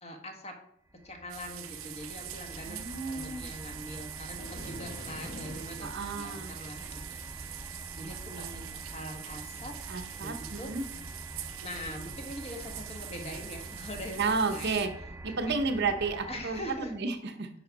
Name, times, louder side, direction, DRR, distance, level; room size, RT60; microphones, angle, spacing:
voice 1, 0.0-0.6 1.0-9.8 10.1-10.8 11.6-14.2 14.5-14.8 15.3-15.6 16.3-16.9, left 1 dB, 30° left, 3 dB, 1.3 m, -43 dB
sound 1, 0.9-17.1, right 2 dB, 10° right, 0.5 m, -45 dB
sound 2, 1.3-14.9, right 12 dB, 85° right, 0.7 m, -44 dB
voice 2, 2.7-3.5 5.8-6.5 8.0-8.8 9.9-10.8 14.2-14.9 15.2-17.5, right 4 dB, 55° right, 6 dB, 0.8 m, -32 dB
Dragon Roar, 4.3-5.9, left 1 dB, 45° left, 1.0 m, -44 dB
9.7 x 4.9 x 4.0 m, 0.71 s
head